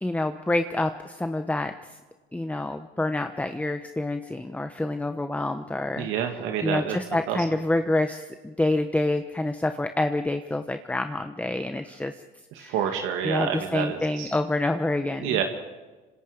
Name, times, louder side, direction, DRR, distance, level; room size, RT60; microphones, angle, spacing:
voice 1, 0.0-1.7 2.3-12.2 12.6-12.8 13.2-15.4, left 2 dB, 5° left, 8 dB, 1.0 m, -27 dB
voice 2, 6.0-7.0 7.3-7.4 12.6-14.3 15.2-15.4, right 9 dB, 85° right, 4 dB, 2.2 m, -28 dB
26.5 x 26.0 x 5.2 m, 1.2 s
cardioid pair, 105°, 20 cm